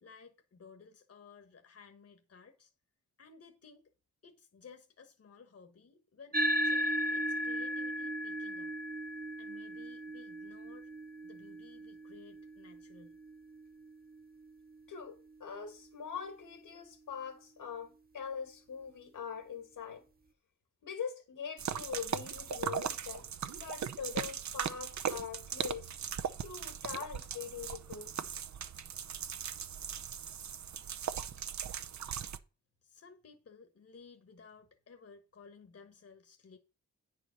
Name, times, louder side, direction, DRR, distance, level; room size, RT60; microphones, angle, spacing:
voice 1, 0.0-2.7 3.2-3.9 4.2-8.8 9.4-10.9 11.2-13.2 32.8-36.6, left 5 dB, 50° left, 1.4 m, -56 dB
sound 1, 6.3-15.1, equal, 30° right, 1.0 m, -37 dB
voice 2, 14.9-20.0 20.8-25.9 26.4-28.1, left 7 dB, 85° left, 2.6 m, -43 dB
sound 2, 21.6-32.4, right 8 dB, 60° right, 0.8 m, -39 dB
9.6 x 4.9 x 5.8 m
cardioid pair, 95°, 32 cm